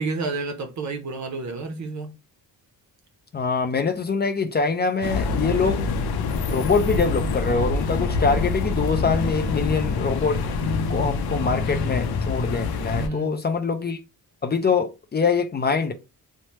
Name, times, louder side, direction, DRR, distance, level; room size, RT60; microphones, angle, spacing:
voice 1, 0.0-2.1 12.8-13.4, right 3 dB, 50° right, 0.6 m, -30 dB
voice 2, 3.3-5.8 6.5-10.4 10.9-14.0 14.4-15.9, left 4 dB, 30° left, 0.4 m, -24 dB
sound 1, 5.0-13.1, left 4 dB, 90° left, 0.6 m, -25 dB
3.1 x 2.1 x 2.8 m
cardioid pair, 115°, 36 cm